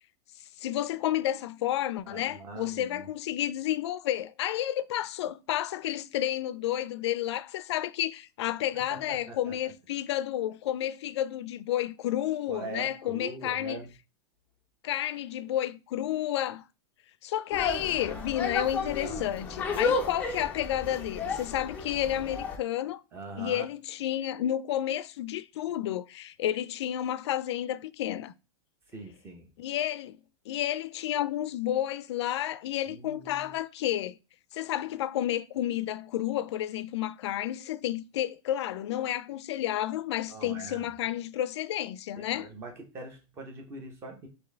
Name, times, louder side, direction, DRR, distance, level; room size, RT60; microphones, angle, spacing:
voice 1, 0.6-13.8 14.8-16.6 17.2-23.0 23.4-28.3 29.6-30.2 30.5-34.2 34.5-42.5, left 12 dB, 80° left, 0.4 m, -31 dB
voice 2, 2.1-3.1 8.7-9.5 12.5-13.9 17.8-18.2 19.0-19.3 23.1-23.7 28.9-29.5 32.9-33.5 40.3-41.0 42.2-44.3, right 3 dB, 15° right, 0.9 m, -43 dB
sound 1, 17.5-22.6, left 4 dB, 10° left, 0.4 m, -33 dB
4.4 x 2.7 x 3.3 m
supercardioid pair, 170°, 14 cm